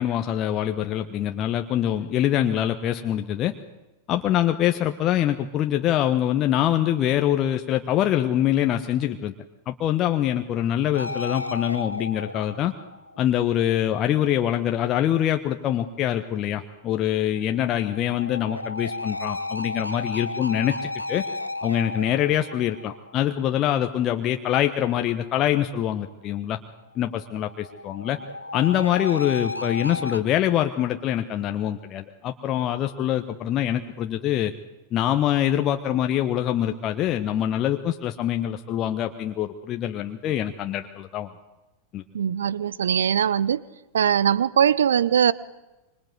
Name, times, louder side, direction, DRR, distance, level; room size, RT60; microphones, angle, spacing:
voice 1, 0.0-3.5 4.1-9.3 9.7-12.7 13.2-21.2 21.6-26.6 27.0-28.2 28.5-34.5 34.9-41.3 41.9-42.0, left 11 dB, 35° left, 5 dB, 1.3 m, -24 dB
sound 1, 10.9-13.5 17.1-23.5 27.1-30.2, left 2 dB, 85° left, 1.2 m, -34 dB
voice 2, 42.1-43.6 43.9-45.3, right 8 dB, 65° right, 21 dB, 0.9 m, -21 dB
25.5 x 25.0 x 8.0 m, 1.0 s
figure-of-eight pair, 90°, 0 cm